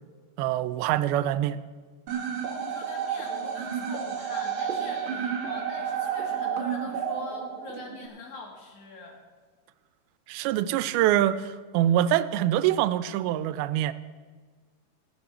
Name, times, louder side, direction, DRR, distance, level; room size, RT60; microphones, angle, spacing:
voice 1, 0.4-1.6 10.3-13.9, right 12 dB, 90° right, 14 dB, 2.5 m, -25 dB
sound 1, 2.1-8.1, right 7 dB, 50° right, 1.6 m, -31 dB
voice 2, 2.5-9.2, left 3 dB, 60° left, 1 dB, 2.8 m, -43 dB
17.0 x 6.3 x 6.8 m, 1.5 s
omnidirectional pair, 4.3 m